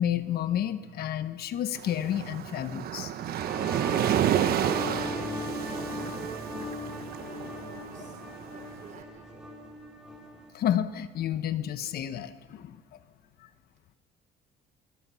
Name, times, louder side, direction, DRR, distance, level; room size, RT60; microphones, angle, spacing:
voice 1, 0.0-3.1 10.5-12.8, left 10 dB, 65° left, 11 dB, 1.2 m, -30 dB
Waves surf, 1.8-8.9, right 10 dB, 65° right, 1.2 m, -30 dB
sound 1, 3.1-10.5, left 1 dB, 5° right, 4.9 m, -38 dB
voice 2, 5.0-5.8 6.2-6.8 7.2-8.2 8.4-9.5, right 6 dB, 50° right, 4 dB, 5.5 m, -49 dB
26.0 x 23.5 x 5.7 m, 1.5 s
cardioid pair, 110°, 17 cm